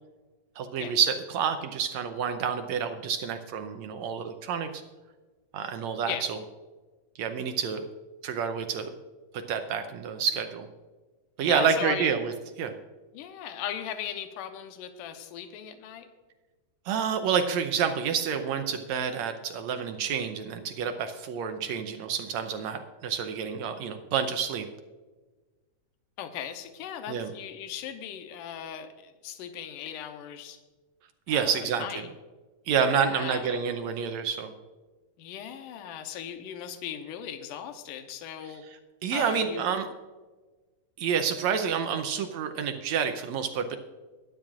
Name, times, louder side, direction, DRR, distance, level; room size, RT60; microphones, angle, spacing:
voice 1, 0.6-4.8 5.5-6.4 7.2-7.8 8.2-8.9 9.3-10.7 11.4-12.3 12.6-12.8 16.9-24.7 27.1-27.3 31.3-32.1 32.7-34.5 39.0-39.9 41.0-43.8, right 7 dB, 75° right, 6 dB, 1.7 m, -28 dB
voice 2, 11.5-12.1 13.1-16.1 26.2-30.6 31.3-32.1 32.7-33.6 35.2-38.6 39.1-39.7, left 9 dB, 80° left, 7 dB, 2.4 m, -38 dB
22.0 x 10.5 x 2.5 m, 1.3 s
omnidirectional pair, 3.8 m